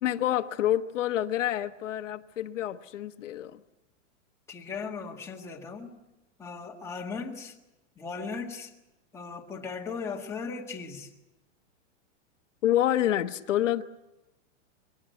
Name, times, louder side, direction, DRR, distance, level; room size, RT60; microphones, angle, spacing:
voice 1, 0.0-3.6 12.6-13.8, left 12 dB, 75° left, 8 dB, 1.3 m, -27 dB
voice 2, 4.5-5.9 6.4-7.6 8.0-8.7 9.1-11.1, left 5 dB, 5° left, -1 dB, 1.7 m, -37 dB
23.0 x 18.5 x 9.2 m, 0.98 s
supercardioid pair, 165°, 37 cm